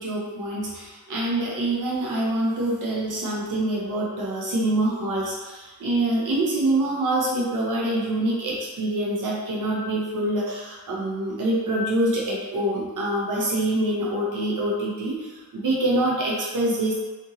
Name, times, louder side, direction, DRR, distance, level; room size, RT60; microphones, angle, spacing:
voice 1, 0.0-16.9, right 1 dB, 60° right, -4 dB, 0.6 m, -25 dB
2.8 x 2.5 x 2.7 m, 1.2 s
wide cardioid pair, 85°, 35 cm